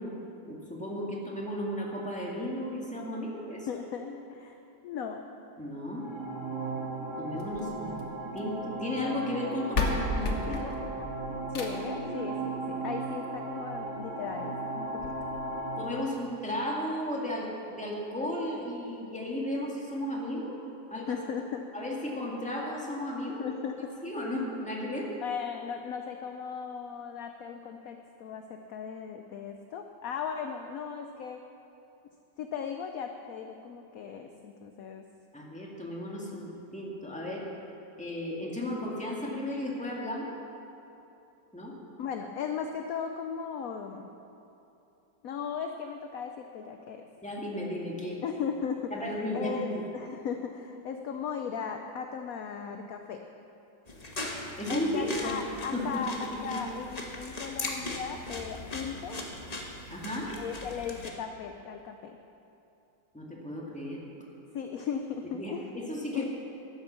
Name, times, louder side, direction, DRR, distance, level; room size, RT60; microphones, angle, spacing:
voice 1, 0.0-3.7 5.6-6.1 7.2-7.9 8.3-10.8 15.8-20.5 20.9-21.1 21.7-23.4 24.0-25.2 35.3-37.5 38.0-40.3 41.5-41.8 47.2-48.2 48.9-49.8 54.6-55.4 55.7-56.0 56.5-56.6 59.9-60.3 63.1-64.0 65.4-66.3, left 1 dB, 5° left, -3 dB, 1.8 m, -34 dB
voice 2, 3.7-4.6 4.8-5.2 11.5-15.3 21.1-21.6 23.4-23.9 25.2-31.4 32.4-35.0 42.0-44.1 45.2-47.0 48.2-48.9 49.3-49.7 49.9-53.2 54.7-56.1 56.4-59.3 60.4-62.2 64.5-65.6 66.1-66.2, left 7 dB, 65° left, 5 dB, 0.9 m, -37 dB
sound 1, 5.9-15.9, right 2 dB, 65° right, 2.8 m, -36 dB
sound 2, 7.4-8.6 9.4-9.5 9.7-12.0 13.4-13.5 14.0-14.1 14.3-14.4 15.0-15.1, left 2 dB, 45° left, 1.3 m, -33 dB
sound 3, 53.9-61.1, left 2 dB, 25° left, 1.1 m, -39 dB
12.5 x 9.1 x 6.7 m, 2.8 s
omnidirectional pair, 1.9 m